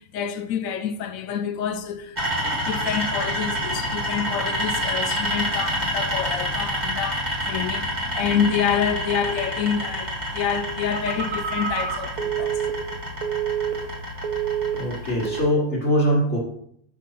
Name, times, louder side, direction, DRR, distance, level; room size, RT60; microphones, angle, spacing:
voice 1, 0.0-12.6, left 7 dB, 70° left, 0.9 m, -27 dB
sound 1, 2.2-15.4, equal, 30° right, 1.8 m, -28 dB
Telephone, 10.9-14.0 14.2-14.9 15.3-15.6, right 9 dB, 75° right, 1.2 m, -28 dB
voice 2, 14.7-16.4, equal, 50° left, 1.9 m, -22 dB
5.5 x 3.7 x 5.7 m
omnidirectional pair, 1.6 m